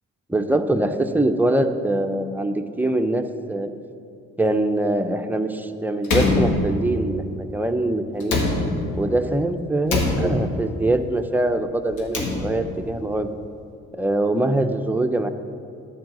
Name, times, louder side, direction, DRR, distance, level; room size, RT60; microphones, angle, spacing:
voice 1, 0.3-3.2 3.5-3.7 4.4-8.5 9.0-13.3 13.9-15.3, right 1 dB, 5° right, 6 dB, 0.5 m, -23 dB
Slam, 6.0-7.2 8.2-9.1 9.9-10.8 11.9-12.8, left 2 dB, 85° left, 1.6 m, -23 dB
10.0 x 4.8 x 7.6 m, 2.5 s
cardioid pair, 90°, 30 cm